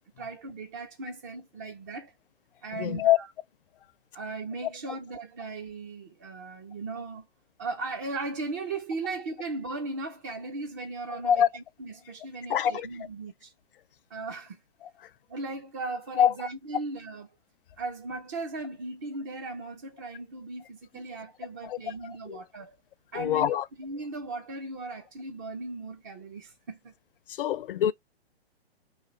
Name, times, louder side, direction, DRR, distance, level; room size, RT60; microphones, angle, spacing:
voice 1, 0.2-2.1 2.6-3.3 4.1-7.3 7.6-13.5 14.1-14.6 15.3-17.3 17.8-22.8 23.1-26.9, right 3 dB, 20° right, 0.4 m, -37 dB
voice 2, 2.7-3.2 11.1-11.5 12.5-12.9 14.8-14.9 16.2-16.3 21.6-22.4 23.1-23.7 27.3-27.9, left 10 dB, 55° left, 0.6 m, -25 dB
3.1 x 2.4 x 3.8 m
hypercardioid pair, 140°, 32 cm